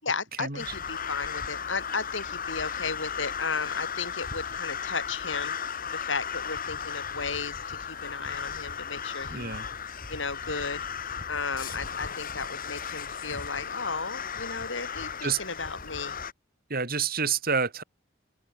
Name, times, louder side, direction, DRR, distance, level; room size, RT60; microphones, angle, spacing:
voice 1, 0.0-9.6 10.1-10.8 11.3-16.2, left 4 dB, 65° left, 6.7 m, -34 dB
sound 1, 0.6-16.3, left 7 dB, 45° left, 2.4 m, -35 dB
voice 2, 9.3-9.7 15.2-15.4 16.7-17.8, right 5 dB, 50° right, 5.3 m, -28 dB
open air
head